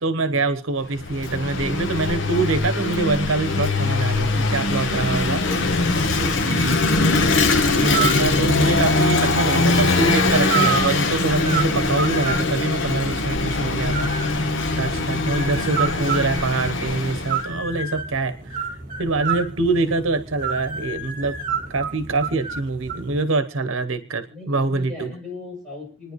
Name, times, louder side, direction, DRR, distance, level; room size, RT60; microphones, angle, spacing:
voice 1, 0.0-5.4 6.4-6.8 7.8-14.1 14.8-18.6 19.0-21.4 21.7-25.1, right 3 dB, 75° right, 10 dB, 1.0 m, -24 dB
Vehicle / Engine, 0.8-17.5, left 3 dB, 60° left, 1.1 m, -22 dB
sound 1, 7.3-23.2, right 5 dB, 40° right, 2.1 m, -30 dB
voice 2, 24.3-26.1, left 2 dB, 5° left, -5 dB, 7.8 m, -39 dB
28.0 x 10.0 x 3.1 m, 0.40 s
head